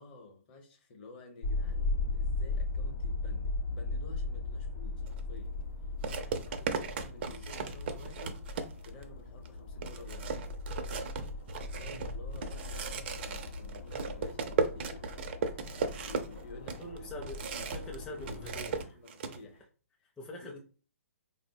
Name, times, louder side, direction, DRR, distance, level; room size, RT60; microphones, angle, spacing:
voice 1, 0.0-5.6 6.0-8.4 8.8-10.6 11.7-15.2 16.0-17.2 17.9-18.5 18.9-19.7 20.0-20.1 20.4-20.6, left 2 dB, 40° left, 4 dB, 0.8 m, -51 dB
sound 1, 1.4-18.9, left 3 dB, 55° left, 0.5 m, -38 dB
sound 2, 5.1-5.2 6.0-9.0 9.5-9.6 9.8-18.0 18.2-19.4, right 5 dB, 45° right, 0.4 m, -36 dB
voice 2, 11.8-12.1 16.8-19.0 20.2-20.6, equal, 10° left, -3 dB, 0.5 m, -44 dB
3.9 x 2.1 x 2.7 m, 0.37 s
hypercardioid pair, 135°, 8 cm